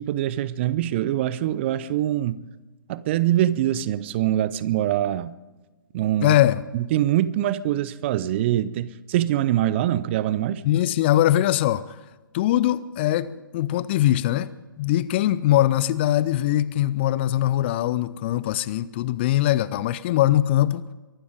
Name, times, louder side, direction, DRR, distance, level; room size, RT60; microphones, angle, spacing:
voice 1, 0.0-2.4 2.9-5.3 5.9-6.4 6.7-10.6, right 13 dB, 30° right, 0.6 m, -24 dB
voice 2, 6.2-6.6 10.6-12.0 12.3-20.9, left 13 dB, 30° left, 0.5 m, -22 dB
23.5 x 12.0 x 5.0 m
figure-of-eight pair, 130°, 12 cm